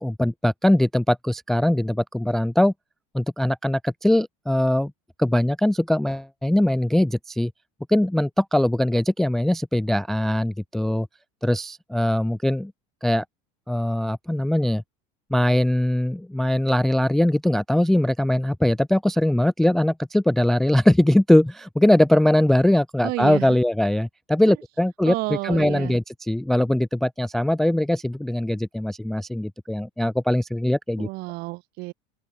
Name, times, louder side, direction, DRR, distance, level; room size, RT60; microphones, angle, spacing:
voice 1, 0.0-2.7 3.1-4.9 5.2-7.5 7.9-11.1 11.4-12.7 13.0-13.2 13.7-14.8 15.3-31.1, left 1 dB, ahead, 0.3 m, -21 dB
voice 2, 23.0-23.6 24.5-24.6 25.0-26.0 31.0-31.9, right 23 dB, 55° right, 4.3 m, -30 dB
open air
cardioid pair, 150°, 18 cm